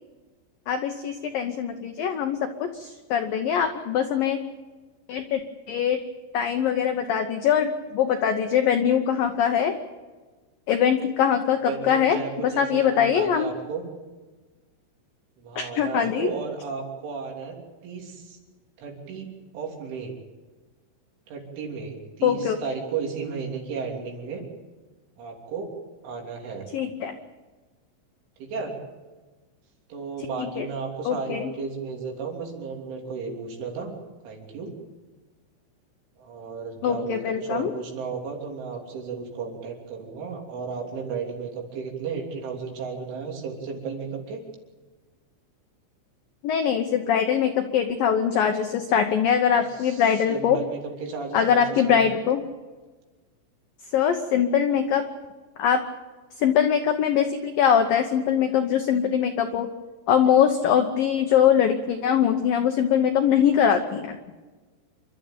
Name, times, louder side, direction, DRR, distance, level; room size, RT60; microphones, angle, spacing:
voice 1, 0.7-4.4 5.1-5.4 5.7-6.0 6.3-9.8 10.7-12.2 12.4-13.5 15.6-16.3 22.2-22.6 26.7-27.2 30.4-30.7 31.1-31.5 36.8-37.7 46.4-50.6 51.3-52.4 53.9-55.1 55.6-55.8 56.4-59.7 60.1-64.2, left 8 dB, 85° left, 6 dB, 2.0 m, -22 dB
voice 2, 11.7-13.8 15.4-18.4 18.8-19.3 19.5-20.1 21.3-24.4 25.2-25.7 26.0-26.7 28.4-28.7 29.9-34.0 34.2-34.7 36.2-44.4 49.5-52.1, right 5 dB, 75° right, 1 dB, 5.6 m, -34 dB
28.0 x 13.0 x 8.9 m, 1.3 s
omnidirectional pair, 5.6 m